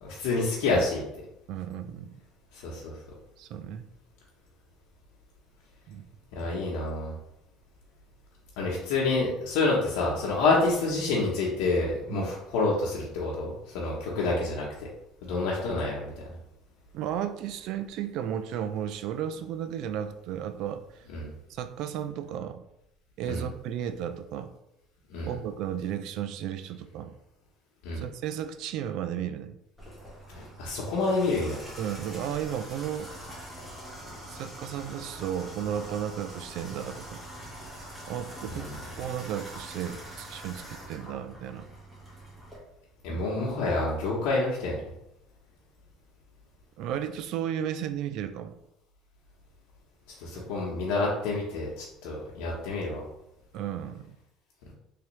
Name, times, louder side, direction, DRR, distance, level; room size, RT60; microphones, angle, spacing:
voice 1, 0.0-1.0 2.5-2.9 6.3-7.1 8.6-14.9 15.2-16.1 21.1-21.3 23.3-23.5 25.1-25.3 27.8-28.0 30.3-31.6 38.5-38.7 43.0-44.8 50.2-53.0, left 3 dB, 80° left, -4 dB, 0.8 m, -28 dB
voice 2, 1.5-2.1 3.4-3.8 5.9-6.0 12.1-12.3 16.9-21.0 21.5-22.6 23.2-24.5 25.3-27.1 27.9-29.6 31.8-33.1 34.3-37.2 38.1-38.7 39.0-41.7 43.1-43.3 46.8-48.6 50.4-50.6 53.5-54.1, right 9 dB, 65° right, 10 dB, 0.3 m, -34 dB
Water tap faucet / Bathtub (filling or washing), 29.8-42.6, equal, 10° right, 1.4 m, -44 dB
3.4 x 3.3 x 3.1 m, 0.83 s
cardioid pair, 125°, 0 cm